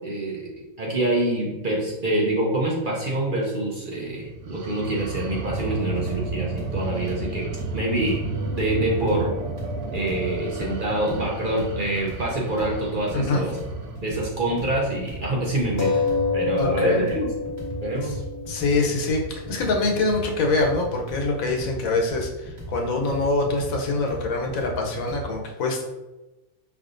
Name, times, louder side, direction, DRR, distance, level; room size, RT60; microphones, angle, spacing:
voice 1, 0.0-0.5 0.8-7.5 7.7-8.2 8.6-9.3 9.9-13.6 14.0-16.0 16.3-17.3 17.8-18.2, right 1 dB, 50° right, -2 dB, 0.7 m, -26 dB
sound 1, 4.2-14.0, right 2 dB, 80° right, 1.0 m, -32 dB
sound 2, 5.4-25.2, right 2 dB, 25° right, 1.1 m, -37 dB
sound 3, 8.3-12.2 12.5-12.6 15.8-21.0, left 4 dB, 55° left, 1.0 m, -31 dB
voice 2, 13.1-13.4 16.6-17.0 18.0-18.1 18.5-25.8, left 3 dB, 80° left, 1 dB, 1.2 m, -24 dB
5.2 x 3.5 x 2.5 m, 1.1 s
omnidirectional pair, 1.4 m